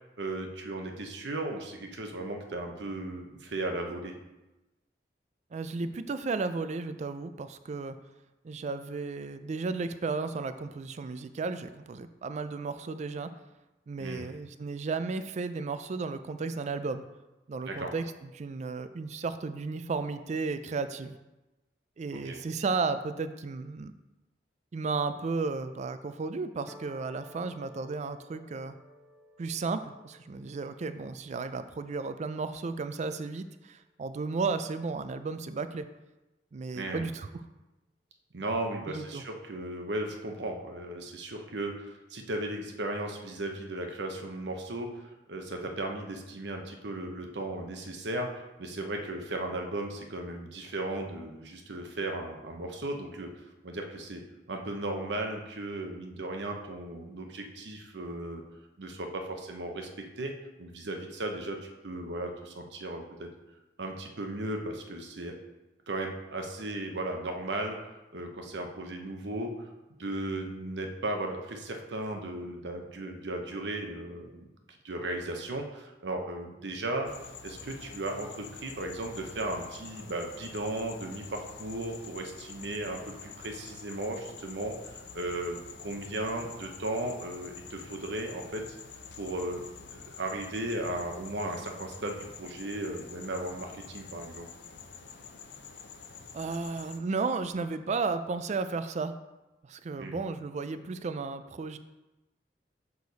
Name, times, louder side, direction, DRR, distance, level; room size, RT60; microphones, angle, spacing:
voice 1, 0.2-4.2 14.0-14.3 17.7-17.9 22.1-22.4 36.7-37.1 38.3-41.7 42.1-48.3 48.6-53.3 53.6-54.2 54.5-58.4 58.8-59.9 60.2-60.3 60.6-63.3 63.8-65.3 65.9-67.8 68.1-69.7 70.0-77.1 77.4-84.7 85.1-85.6 85.8-88.6 89.2-89.6 89.9-94.5 100.0-100.2, right 1 dB, 80° right, 3 dB, 0.8 m, -36 dB
voice 2, 5.5-8.0 8.4-13.3 13.9-17.0 17.5-21.2 22.0-23.9 24.7-28.8 29.4-35.9 36.5-37.4 38.9-39.2 96.3-99.1 99.6-101.8, right 4 dB, 40° right, 11 dB, 0.4 m, -34 dB
sound 1, 26.7-33.2, equal, 5° right, 0.7 m, -56 dB
sound 2, 77.1-97.0, left 5 dB, 75° left, 0.6 m, -47 dB
6.5 x 4.7 x 4.0 m, 1.0 s
head